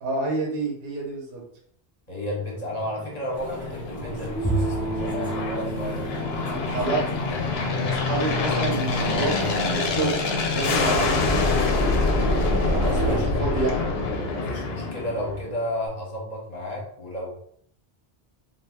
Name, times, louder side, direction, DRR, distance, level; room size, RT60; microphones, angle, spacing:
voice 1, 0.0-1.4 6.5-7.1 7.9-10.1 10.5-11.5 13.1-13.8, right 3 dB, 70° right, 0 dB, 1.0 m, -28 dB
voice 2, 2.1-6.6 12.7-13.6 14.3-17.3, left 1 dB, 45° left, -4 dB, 0.9 m, -33 dB
Aircraft, 2.8-15.6, left 3 dB, 75° left, 0.8 m, -26 dB
sound 1, 3.3-13.2, right 2 dB, 35° right, 0.8 m, -34 dB
Bowed string instrument, 4.4-8.7, right 2 dB, 10° left, 0.4 m, -32 dB
2.6 x 2.3 x 3.3 m, 0.64 s
omnidirectional pair, 1.0 m